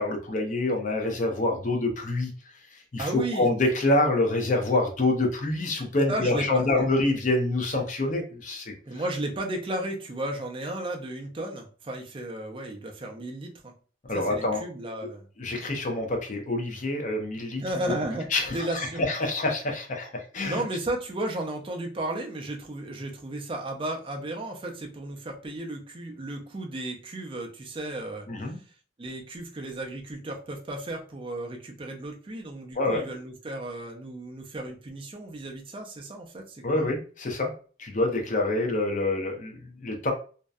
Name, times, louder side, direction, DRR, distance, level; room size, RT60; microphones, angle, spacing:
voice 1, 0.0-2.3 2.7-8.7 14.1-14.6 15.4-17.6 18.3-20.6 28.3-28.6 32.8-33.0 36.6-37.5 37.8-40.1, left 2 dB, 40° left, 2 dB, 0.5 m, -26 dB
voice 2, 3.0-3.5 6.1-7.0 8.9-13.7 14.1-15.2 17.6-19.0 20.4-28.3 29.0-36.9, right 1 dB, 25° right, 2 dB, 0.4 m, -34 dB
2.6 x 2.1 x 2.3 m, 0.40 s
head